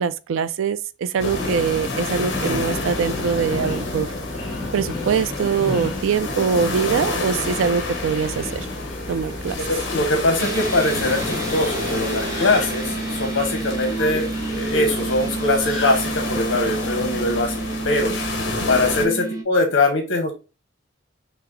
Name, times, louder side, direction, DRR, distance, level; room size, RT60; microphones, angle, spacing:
voice 1, 0.0-4.1 4.7-8.7 9.1-9.6, right 6 dB, 75° right, 0.3 m, -23 dB
sound 1, 1.2-19.1, left 3 dB, 60° left, 1.1 m, -30 dB
Subway metro underground, 1.2-16.4, left 2 dB, 20° left, 1.6 m, -32 dB
voice 2, 9.6-18.1 18.7-20.3, left 2 dB, 80° left, 0.8 m, -22 dB
sound 2, 10.4-19.4, right 3 dB, 15° right, 0.6 m, -30 dB
5.8 x 2.0 x 3.6 m
head